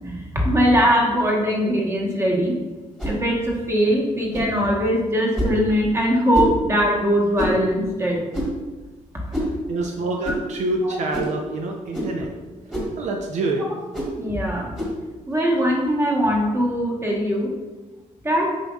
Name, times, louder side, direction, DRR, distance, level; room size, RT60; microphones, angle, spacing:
voice 1, 0.0-2.5 3.0-8.2 9.3-9.5 10.2-10.3 10.8-10.9 14.2-14.7 15.3-17.5 18.2-18.6, equal, 20° right, -2 dB, 1.2 m, -21 dB
sound 1, 3.0-3.2 4.3-4.5 5.3-5.6 6.3-6.6 7.4-7.6 8.3-8.6 9.3-9.5 10.2-10.4 11.1-11.4 11.9-12.1 12.7-12.9 13.9-14.1 14.7-15.0, equal, 5° right, 1.5 m, -26 dB
voice 2, 9.4-12.3 13.0-13.7, right 2 dB, 65° right, 1 dB, 0.6 m, -26 dB
7.6 x 5.2 x 2.4 m, 1.2 s
wide cardioid pair, 170°, 13 cm